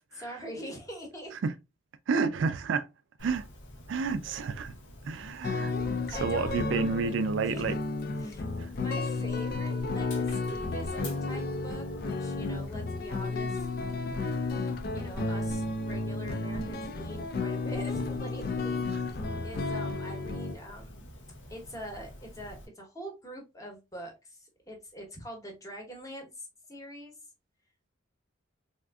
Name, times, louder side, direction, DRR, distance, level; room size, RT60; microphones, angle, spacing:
voice 1, 0.1-1.3 6.1-7.8 8.2-13.7 14.9-21.1 21.5-27.2, equal, 15° left, 0.9 m, -44 dB
voice 2, 2.1-2.9 3.2-3.5 3.9-4.7 5.0-5.7 6.1-7.8 8.6-8.7, right 5 dB, 75° right, 0.4 m, -30 dB
Dog, 3.2-22.7, left 1 dB, 85° left, 0.9 m, -48 dB
sound 1, 5.4-20.5, left 3 dB, 50° left, 0.4 m, -32 dB
3.5 x 2.5 x 2.3 m
head